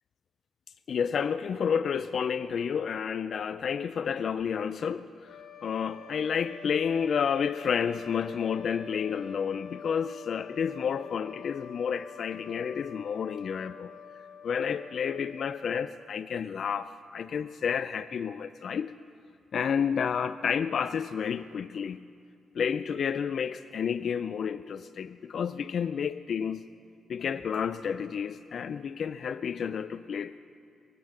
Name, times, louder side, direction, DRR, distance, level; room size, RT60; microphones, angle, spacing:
voice 1, 0.9-13.9 14.4-18.9 19.5-22.0 22.5-26.6 27.1-30.4, left 7 dB, 65° left, 14 dB, 0.3 m, -30 dB
sound 1, 5.2-16.2, left 6 dB, 80° left, 1.0 m, -47 dB
21.5 x 8.3 x 7.1 m, 2.4 s
supercardioid pair, 60°, 0 cm